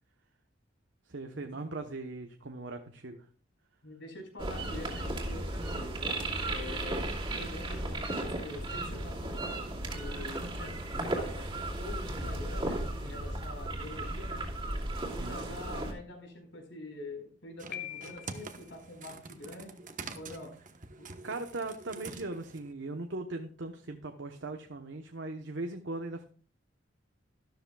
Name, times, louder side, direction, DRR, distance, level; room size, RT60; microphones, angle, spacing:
voice 1, 1.1-3.2 15.1-15.6 21.2-26.2, right 2 dB, 70° right, 5 dB, 1.0 m, -39 dB
voice 2, 3.8-6.0 6.5-9.6 9.9-14.4 15.1-19.8 20.1-20.5 21.0-21.1, left 1 dB, 75° left, 3 dB, 4.7 m, -45 dB
sound 1, 4.4-15.9, right 1 dB, 25° right, 2.6 m, -35 dB
sound 2, 17.6-22.7, right 4 dB, 45° right, 1.1 m, -46 dB
Piano, 17.7-18.7, left 12 dB, 55° left, 0.8 m, -42 dB
13.0 x 13.0 x 2.3 m, 0.42 s
head